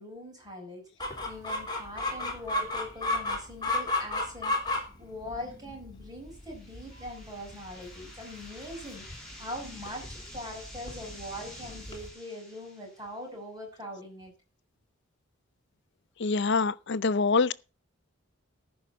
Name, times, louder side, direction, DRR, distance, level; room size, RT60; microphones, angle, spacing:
voice 1, 0.0-14.3, left 1 dB, 20° right, 5.8 m, -42 dB
Chicken rooster, 1.0-12.1, left 2 dB, 20° left, 3.4 m, -34 dB
sound 1, 6.3-13.2, left 1 dB, 5° left, 8.0 m, -49 dB
voice 2, 16.2-17.5, left 4 dB, 60° left, 0.6 m, -25 dB
14.5 x 5.7 x 6.6 m
head